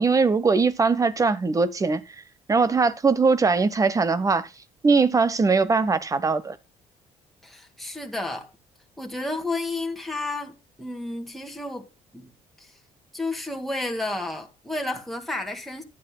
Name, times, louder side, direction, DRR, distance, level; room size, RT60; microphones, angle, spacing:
voice 1, 0.0-2.0 2.5-4.5 4.8-6.6, right 4 dB, 25° right, 1.1 m, -21 dB
voice 2, 7.4-8.5 9.0-12.3 12.6-12.7 13.1-15.8, left 2 dB, ahead, 2.1 m, -31 dB
15.0 x 10.5 x 2.3 m
cardioid pair, 105°, 14 cm